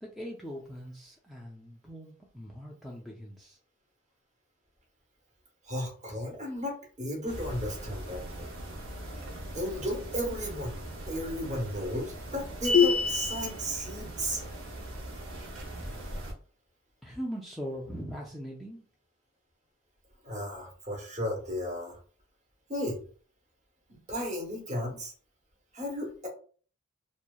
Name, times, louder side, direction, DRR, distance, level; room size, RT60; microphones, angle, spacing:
voice 1, 0.0-3.6 17.0-18.8, equal, ahead, -3 dB, 0.3 m, -41 dB
voice 2, 5.6-8.5 9.5-10.8 11.1-14.4 15.8-16.0 20.2-22.0 22.7-23.0 23.9-25.1 25.7-26.3, equal, 35° right, 1 dB, 0.8 m, -34 dB
sound 1, 7.3-16.3, right 1 dB, 70° right, 0.6 m, -41 dB
sound 2, 12.6-13.5, left 6 dB, 85° left, 0.5 m, -23 dB
2.7 x 2.1 x 2.2 m, 0.42 s
head